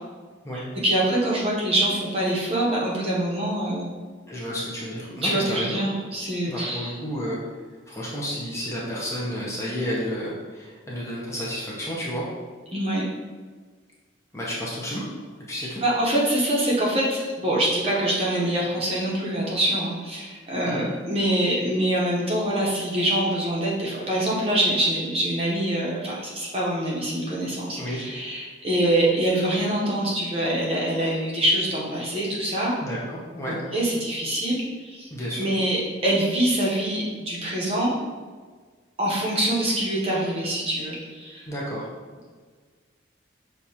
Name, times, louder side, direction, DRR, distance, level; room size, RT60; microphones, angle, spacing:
voice 1, 0.5-3.9 5.2-6.9 12.7-13.1 15.8-32.7 33.5-35.1 35.4-37.9 39.0-41.4, right 1 dB, 30° right, -4 dB, 0.8 m, -25 dB
voice 2, 4.3-5.8 6.5-7.6 7.9-12.3 14.3-15.1 15.5-15.8 20.6-20.9 27.8-28.0 32.8-33.5 35.1-35.5 41.5-41.9, equal, 15° left, -5 dB, 0.6 m, -31 dB
6.4 x 2.3 x 2.8 m, 1.5 s
head